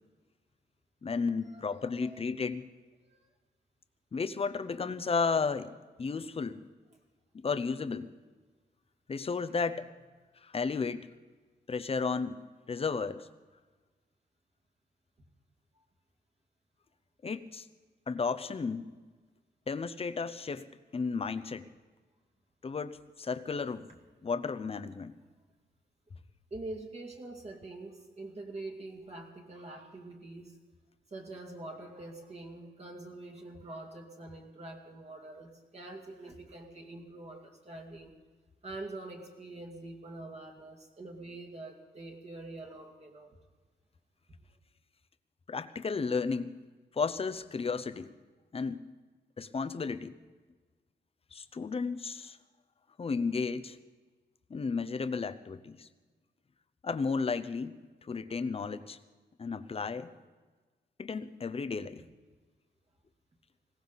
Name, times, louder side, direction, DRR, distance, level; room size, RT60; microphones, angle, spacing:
voice 1, 1.0-2.7 4.1-6.6 7.4-8.1 9.1-9.9 10.4-11.1 11.7-13.3 17.2-17.7 18.1-18.9 19.7-20.7 20.9-21.7 22.6-23.9 24.2-25.2 45.5-46.6 46.9-48.1 48.5-48.9 49.4-50.1 51.3-52.4 53.0-53.8 54.5-55.9 56.8-57.8 58.1-59.0 59.4-60.1 61.0-62.0, left 5 dB, 35° left, 12 dB, 0.8 m, -33 dB
voice 2, 1.5-2.2 3.0-3.2 15.8-15.9 26.5-30.6 31.1-38.1 38.6-43.4, right 2 dB, 35° right, 0 dB, 2.4 m, -45 dB
20.5 x 17.5 x 4.1 m, 1.3 s
wide cardioid pair, 155°, 18 cm